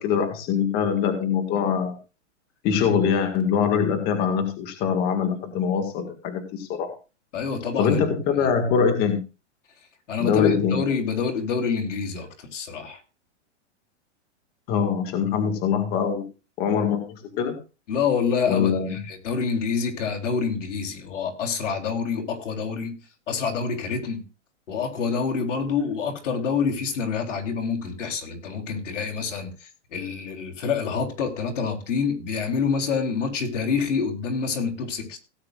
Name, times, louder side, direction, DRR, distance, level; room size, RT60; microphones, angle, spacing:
voice 1, 0.0-2.0 2.6-6.9 7.8-9.2 10.2-10.8 14.7-16.3 16.6-17.6 18.5-19.0, left 7 dB, 25° left, 6 dB, 2.0 m, -23 dB
voice 2, 7.3-8.0 8.4-8.5 10.1-13.0 17.9-23.0 23.3-24.2 24.7-35.2, left 5 dB, 85° left, 2 dB, 3.7 m, -27 dB
17.5 x 9.5 x 2.5 m, 0.32 s
hypercardioid pair, 160°, 36 cm